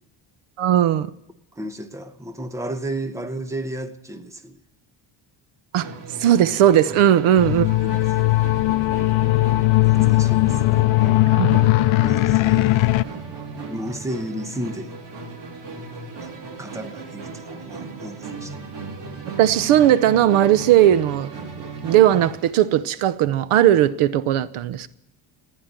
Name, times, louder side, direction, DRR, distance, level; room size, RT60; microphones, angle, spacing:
voice 1, 0.6-1.1 5.7-5.9 6.2-7.7 11.3-11.6 19.4-21.3 21.8-24.9, right 11 dB, 80° right, 0.9 m, -17 dB
voice 2, 1.6-4.6 7.6-8.5 9.8-10.8 12.0-12.9 13.6-14.9 16.2-16.3 16.6-18.6, right 1 dB, 5° right, 0.8 m, -33 dB
Musical instrument, 5.8-22.5, right 4 dB, 55° right, 3.5 m, -36 dB
sound 1, 7.4-13.0, left 20 dB, 70° left, 0.6 m, -18 dB
15.0 x 9.7 x 8.9 m
cardioid pair, 155°, 49 cm